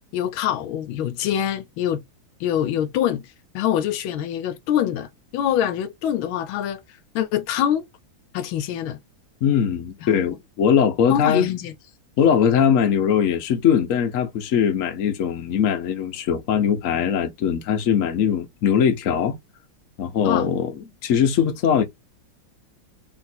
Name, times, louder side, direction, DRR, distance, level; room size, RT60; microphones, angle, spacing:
voice 1, 0.1-2.0 2.4-3.2 3.5-6.8 7.1-7.9 8.3-9.0 10.0-10.2 11.1-11.7 20.2-20.5, left 10 dB, 80° left, 1.5 m, -24 dB
voice 2, 9.4-11.4 12.2-19.4 20.0-21.8, left 8 dB, 55° left, 0.9 m, -21 dB
3.5 x 2.5 x 4.2 m
omnidirectional pair, 2.2 m